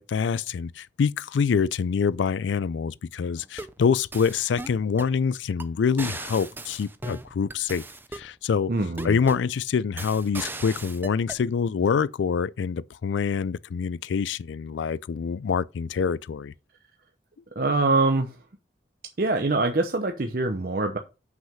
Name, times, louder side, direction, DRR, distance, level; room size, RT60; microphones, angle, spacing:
voice 1, 0.0-7.8 8.1-8.7 9.0-16.5, left 6 dB, 80° left, 0.4 m, -26 dB
sound 1, 3.4-3.8 4.1-5.2 5.6-5.7 6.0-8.3 9.0-9.5 10.0-11.4, right 2 dB, 10° right, 0.5 m, -37 dB
voice 2, 8.7-9.2 17.6-18.4 19.2-21.0, right 2 dB, 50° right, 0.7 m, -24 dB
6.0 x 5.6 x 5.7 m
head